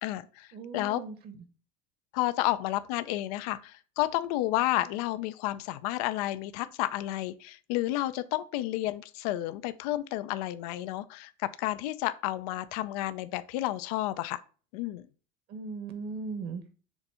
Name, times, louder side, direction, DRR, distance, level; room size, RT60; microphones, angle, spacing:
voice 1, 0.0-0.5 0.7-1.0 2.1-14.4 14.7-15.1, left 15 dB, 85° left, 0.5 m, -31 dB
voice 2, 0.5-1.4 15.5-16.7, right 4 dB, 50° right, 1.2 m, -38 dB
7.0 x 2.6 x 5.5 m
cardioid pair, 130°, 19 cm